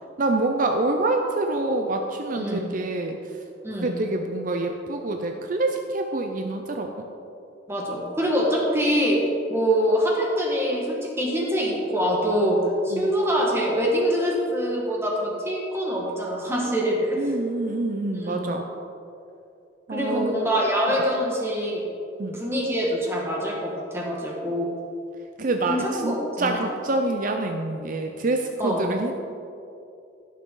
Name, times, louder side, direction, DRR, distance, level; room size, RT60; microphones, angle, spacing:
voice 1, 0.2-3.4 3.7-6.9 12.9-13.1 17.1-18.7 19.9-20.7 22.2-22.4 25.4-29.1, right 2 dB, 50° right, 4 dB, 0.6 m, -26 dB
voice 2, 7.7-9.2 9.5-17.2 18.1-18.5 19.9-21.8 22.3-24.7 25.7-26.6 28.6-28.8, equal, 15° right, -2 dB, 1.5 m, -24 dB
16.5 x 6.6 x 3.8 m, 2.6 s
head